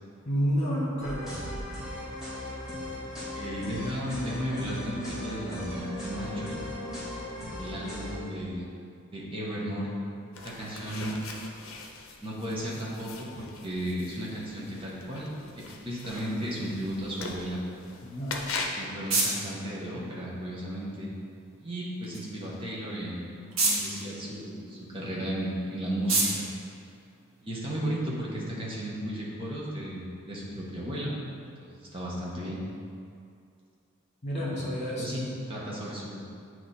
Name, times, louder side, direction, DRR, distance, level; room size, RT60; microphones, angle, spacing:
voice 1, 0.2-1.3 18.0-18.4 34.2-35.2, equal, 35° left, -5 dB, 1.5 m, -29 dB
sound 1, 1.0-8.1, left 1 dB, ahead, 1.4 m, -37 dB
voice 2, 3.3-6.6 7.5-8.7 9.1-9.9 10.4-11.1 12.2-17.6 18.8-21.1 21.6-23.3 23.6-26.5 27.4-31.1 31.6-32.6 34.3-34.7 35.0-36.2, equal, 25° right, -5 dB, 1.1 m, -34 dB
sound 2, 10.3-18.9, left 3 dB, 75° left, 0.7 m, -41 dB
sound 3, 18.3-27.7, right 2 dB, 70° right, 1.2 m, -34 dB
8.5 x 3.1 x 4.2 m, 2.4 s
head